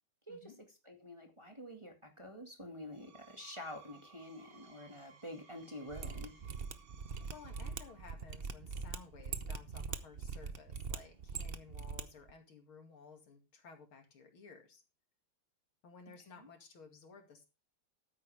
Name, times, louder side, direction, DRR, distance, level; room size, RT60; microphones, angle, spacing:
voice 1, 0.8-6.3 16.1-16.5, left 1 dB, 15° right, 2 dB, 1.9 m, -48 dB
Screech, 2.8-8.3, right 6 dB, 70° right, 2.5 m, -62 dB
Mechanisms, 5.9-12.0 12.3-12.4, right 5 dB, 85° right, 0.5 m, -42 dB
voice 2, 7.3-14.8 15.8-17.5, left 5 dB, 75° left, 4 dB, 3.2 m, -56 dB
13.0 x 9.6 x 3.5 m, 0.28 s
omnidirectional pair, 2.3 m